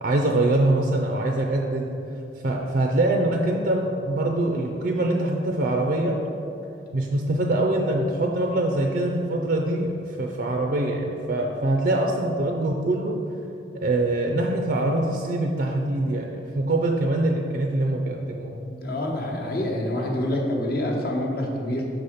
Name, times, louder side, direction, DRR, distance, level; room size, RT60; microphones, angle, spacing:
voice 1, 0.0-2.0 2.4-6.2 6.9-13.2 13.8-18.6, right 1 dB, 55° right, 1 dB, 0.4 m, -24 dB
voice 2, 18.6-21.8, left 1 dB, 55° left, -1 dB, 0.9 m, -27 dB
6.0 x 4.2 x 5.0 m, 2.8 s
head